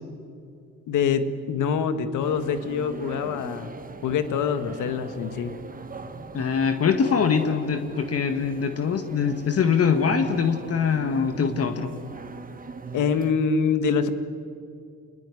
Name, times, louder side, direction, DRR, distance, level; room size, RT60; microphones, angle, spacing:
voice 1, 0.9-3.7 4.0-5.5 12.9-14.1, left 6 dB, 85° left, 10 dB, 1.9 m, -25 dB
sound 1, 2.2-13.3, right 4 dB, 30° right, 1.7 m, -41 dB
voice 2, 6.3-11.9, left 6 dB, 50° left, 7 dB, 1.8 m, -23 dB
27.0 x 20.5 x 10.0 m, 2.5 s
cardioid pair, 90°, 30 cm